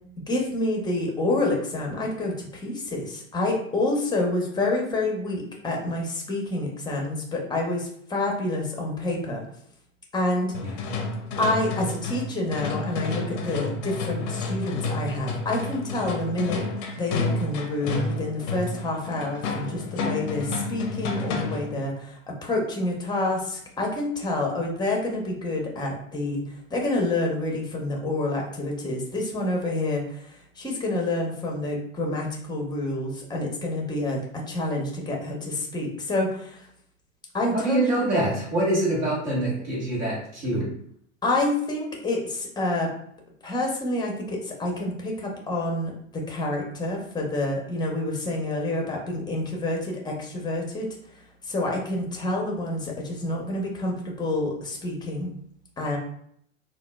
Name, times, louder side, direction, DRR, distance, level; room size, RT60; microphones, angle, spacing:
voice 1, 0.3-9.4 10.1-10.5 11.4-16.6 17.0-26.4 26.7-30.2 30.6-36.7 37.3-38.0 41.2-42.9 43.4-50.9 51.4-55.3 55.8-56.0, left 2 dB, 10° left, 0 dB, 0.8 m, -28 dB
sound 1, 10.5-21.8, left 3 dB, 40° left, 0.6 m, -30 dB
voice 2, 37.5-40.7, right 1 dB, 40° right, -5 dB, 1.5 m, -25 dB
3.7 x 2.4 x 2.3 m, 0.67 s
figure-of-eight pair, 95°, 39 cm